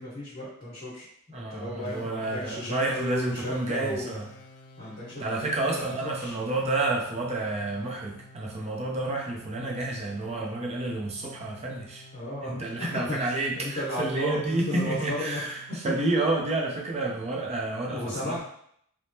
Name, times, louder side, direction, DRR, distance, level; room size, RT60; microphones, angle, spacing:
voice 1, 0.0-4.1 4.8-5.9 6.2-6.3 12.1-15.4 17.9-18.4, left 1 dB, 50° left, -9 dB, 1.4 m, -34 dB
voice 2, 1.3-4.3 5.2-12.1 12.4-18.4, right 2 dB, 30° right, -1 dB, 0.5 m, -30 dB
sound 1, 1.8-16.3, left 2 dB, 65° left, 0.4 m, -52 dB
3.4 x 2.0 x 2.7 m, 0.67 s
head